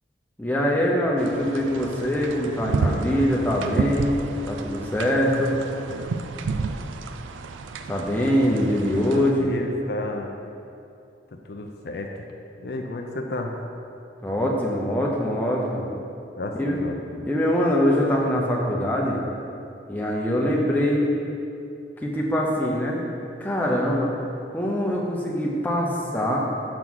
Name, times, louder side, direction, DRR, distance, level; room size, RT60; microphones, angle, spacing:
voice 1, 0.4-5.6 7.9-9.5 14.2-15.9 16.6-16.8 17.3-19.2 19.9-21.2 22.0-23.0 23.4-24.1 24.5-26.4, equal, 10° left, -3 dB, 0.6 m, -23 dB
sound 1, 1.2-9.3, right 4 dB, 85° right, 0.3 m, -31 dB
voice 2, 9.1-10.3 11.5-12.1 12.6-13.5 16.4-17.3, left 2 dB, 55° left, 3 dB, 0.4 m, -32 dB
6.0 x 3.7 x 6.1 m, 2.7 s
head